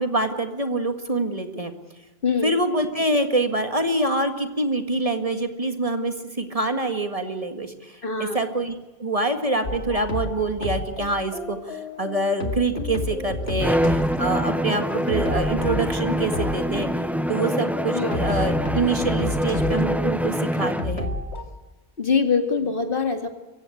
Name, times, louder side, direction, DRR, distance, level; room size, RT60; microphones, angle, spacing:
voice 1, 0.0-1.7 2.4-8.7 9.0-16.9 17.3-21.1, right 2 dB, 35° right, 7 dB, 1.9 m, -25 dB
voice 2, 2.2-2.5 8.0-8.4 17.9-18.2 22.0-23.3, left 5 dB, 55° left, 6 dB, 2.3 m, -23 dB
sound 1, 9.6-21.4, left 2 dB, 90° left, 2.5 m, -31 dB
Bowed string instrument, 13.6-21.0, equal, ahead, 0.4 m, -25 dB
24.5 x 16.0 x 8.5 m, 1.2 s
omnidirectional pair, 1.1 m